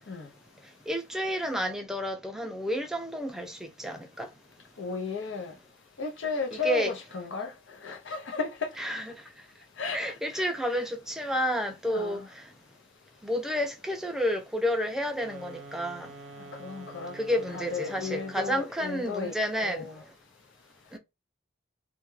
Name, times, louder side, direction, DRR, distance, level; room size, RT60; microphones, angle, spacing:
voice 1, 0.9-4.3 6.5-6.9 8.8-9.2 9.9-12.5 13.2-16.1 17.1-19.9 20.9-21.0, equal, 5° right, 0.3 m, -30 dB
voice 2, 4.8-5.5 6.0-7.5 7.8-8.7 9.8-10.5 11.8-12.3 16.6-17.1 17.5-20.0, left 5 dB, 90° left, 0.6 m, -34 dB
sound 1, 15.1-18.7, right 3 dB, 85° right, 0.5 m, -47 dB
2.3 x 2.1 x 3.1 m
head